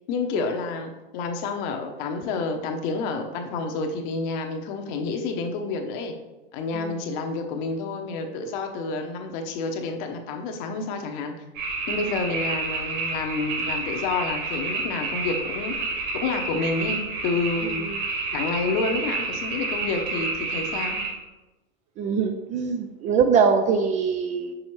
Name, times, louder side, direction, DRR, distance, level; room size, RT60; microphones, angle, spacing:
voice 1, 0.1-6.1 6.5-11.3 11.9-15.8 16.1-17.8 18.3-21.0, left 4 dB, 50° left, 4 dB, 1.0 m, -29 dB
sound 1, 11.5-21.1, right 3 dB, 55° right, 1.9 m, -29 dB
voice 2, 22.0-24.5, right 6 dB, 25° right, 7 dB, 0.4 m, -23 dB
6.2 x 4.9 x 3.2 m, 1.1 s
hypercardioid pair, 110°, 29 cm